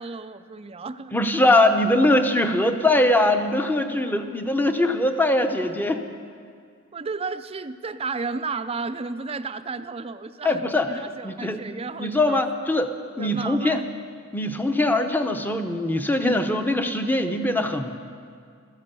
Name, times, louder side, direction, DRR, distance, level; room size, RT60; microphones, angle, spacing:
voice 1, 0.0-1.1 6.9-12.4 13.2-13.9, right 4 dB, 30° right, 11 dB, 0.5 m, -33 dB
voice 2, 1.1-6.0 10.4-11.6 12.0-13.8 14.3-18.0, left 1 dB, 10° left, 7 dB, 0.8 m, -22 dB
15.5 x 13.5 x 6.8 m, 2.2 s
head